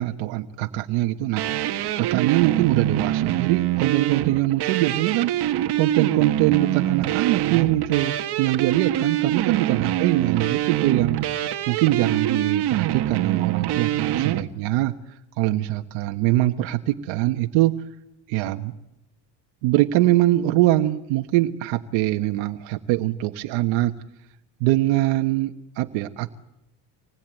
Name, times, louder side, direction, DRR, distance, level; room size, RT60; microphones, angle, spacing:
voice 1, 0.0-17.8 18.3-18.7 19.6-23.9 24.6-26.3, right 16 dB, 90° right, 5 dB, 1.3 m, -23 dB
sound 1, 1.4-14.4, right 13 dB, 60° right, 1.6 m, -24 dB
26.0 x 20.0 x 9.1 m, 0.86 s
cardioid pair, 110°, 45 cm